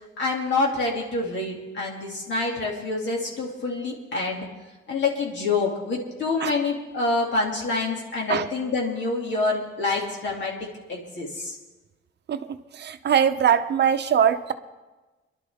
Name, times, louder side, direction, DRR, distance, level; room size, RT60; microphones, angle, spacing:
voice 1, 0.2-4.5 4.9-10.5 10.9-11.6, left 3 dB, 60° left, -2 dB, 2.6 m, -27 dB
voice 2, 12.8-14.5, right 8 dB, 55° right, 9 dB, 0.8 m, -21 dB
25.0 x 12.0 x 3.6 m, 1.2 s
cardioid pair, 150°, 21 cm